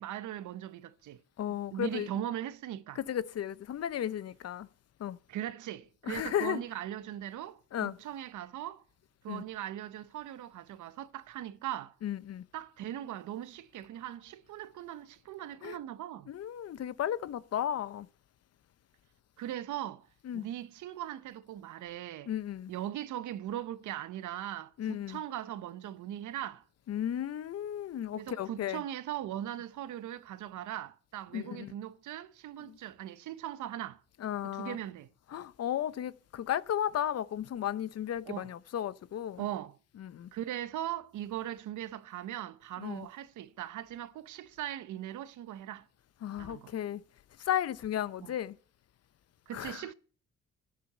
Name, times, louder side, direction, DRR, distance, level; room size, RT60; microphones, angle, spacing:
voice 1, 0.0-1.2 1.7-3.0 5.3-8.8 9.2-11.9 12.5-16.3 19.4-20.1 20.3-22.3 22.7-26.6 28.2-34.0 34.4-35.1 38.3-38.5 39.4-39.8 40.3-45.9 46.4-46.7 48.2-48.4 49.5-49.9, right 12 dB, 75° right, 0.9 m, -39 dB
voice 2, 1.4-2.1 3.0-4.7 5.0-5.2 6.1-6.6 7.7-8.0 9.3-9.4 12.0-12.4 15.6-15.8 16.3-18.1 20.2-20.5 22.3-22.7 24.8-25.2 26.9-28.8 31.3-31.7 32.6-32.8 34.2-34.8 35.3-39.4 40.0-40.3 42.8-43.1 46.2-47.0 47.4-48.6 49.5-49.8, left 10 dB, 55° left, 0.8 m, -34 dB
11.5 x 10.5 x 6.8 m
cardioid pair, 90°, 30 cm